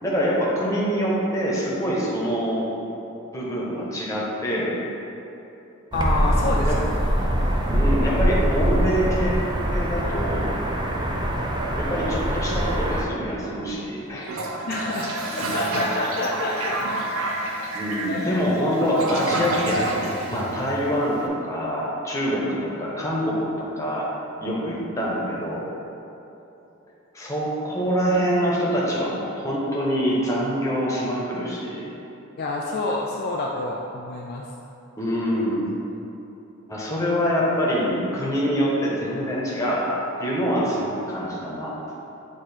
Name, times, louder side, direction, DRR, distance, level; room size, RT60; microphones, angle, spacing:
voice 1, 0.0-2.7 3.3-4.7 6.7-6.8 7.7-9.3 9.7-10.5 11.8-14.3 17.7-24.1 24.4-25.6 27.1-31.9 35.0-35.6 36.7-41.7, equal, 15° left, -6 dB, 1.1 m, -25 dB
voice 2, 5.9-6.9 14.7-16.8 18.1-18.5 32.4-34.4, left 2 dB, 50° left, -2 dB, 0.4 m, -28 dB
sound 1, 5.9-13.0, equal, 20° right, 0.5 m, -23 dB
Toilet flush, 14.2-21.2, right 2 dB, 85° right, 0.7 m, -29 dB
8.3 x 3.0 x 4.4 m, 2.9 s
head